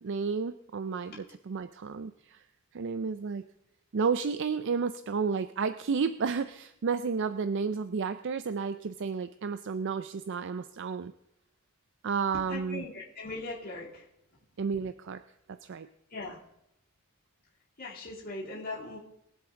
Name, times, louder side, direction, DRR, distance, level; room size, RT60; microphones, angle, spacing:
voice 1, 0.0-2.4 2.7-3.4 3.9-11.1 12.0-12.8 14.6-15.2 15.6-15.9, right 5 dB, 60° right, 12 dB, 0.4 m, -32 dB
voice 2, 12.5-14.0 16.1-16.4 17.8-19.0, left 2 dB, 45° left, -7 dB, 2.9 m, -39 dB
22.0 x 7.8 x 3.7 m, 0.82 s
head